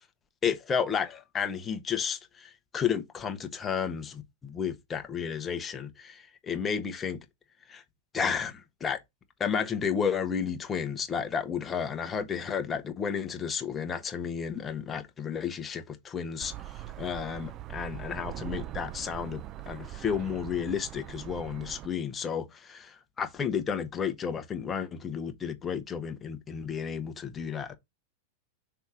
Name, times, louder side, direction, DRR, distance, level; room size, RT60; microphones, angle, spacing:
voice 1, 0.4-7.2 7.7-7.8 8.1-9.0 9.4-27.7, left 7 dB, 20° left, 1.1 m, -32 dB
sound 1, 16.4-21.9, right 13 dB, 40° right, 0.4 m, -41 dB
5.7 x 3.4 x 4.8 m
hypercardioid pair, 115°, 0 cm